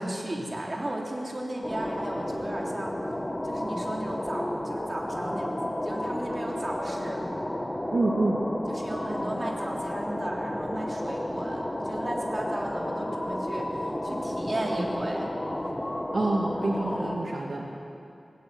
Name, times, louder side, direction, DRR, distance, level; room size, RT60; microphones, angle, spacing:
voice 1, 0.0-3.0 3.4-7.2 8.7-15.3 16.9-17.2, right 1 dB, 40° right, -2 dB, 3.5 m, -35 dB
sound 1, 1.6-17.2, left 1 dB, 20° left, 1.7 m, -32 dB
voice 2, 7.9-8.4 16.1-17.7, right 2 dB, 80° right, -1 dB, 2.1 m, -27 dB
19.0 x 18.5 x 7.9 m, 2.8 s
wide cardioid pair, 90°, 0 cm